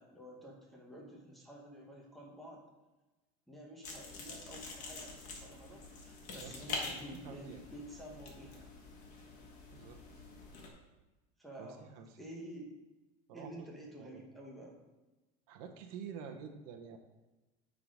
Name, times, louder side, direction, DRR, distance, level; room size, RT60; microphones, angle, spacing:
voice 1, 0.0-2.6 3.5-8.7 11.4-11.9 12.2-12.8 13.3-14.8, right 1 dB, ahead, -3 dB, 1.0 m, -50 dB
sound 1, 3.8-10.7, left 3 dB, 40° left, 1.5 m, -46 dB
voice 2, 7.1-7.6 9.7-10.0 11.6-12.1 13.3-13.5 14.0-14.2 15.5-17.0, right 7 dB, 75° right, 4 dB, 1.0 m, -48 dB
9.2 x 3.9 x 4.9 m, 1.1 s
cardioid pair, 175°, 20 cm